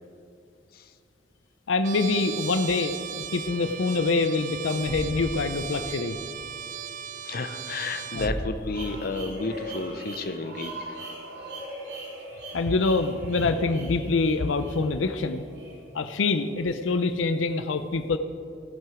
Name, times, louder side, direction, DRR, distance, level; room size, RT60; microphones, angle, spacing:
voice 1, 1.7-6.2 8.1-8.3 12.5-15.5 15.9-18.2, left 3 dB, 90° left, 9 dB, 0.6 m, -25 dB
Trumpet, 1.8-8.4, right 8 dB, 45° right, 0.3 m, -37 dB
Thump thud, 4.8-5.4 8.1-8.7, equal, 90° right, 1.4 m, -34 dB
voice 2, 7.2-10.7, left 3 dB, 55° left, 8 dB, 0.7 m, -31 dB
sound 1, 8.7-16.6, right 1 dB, 60° right, 2.8 m, -41 dB
16.0 x 7.6 x 5.0 m, 2.5 s
head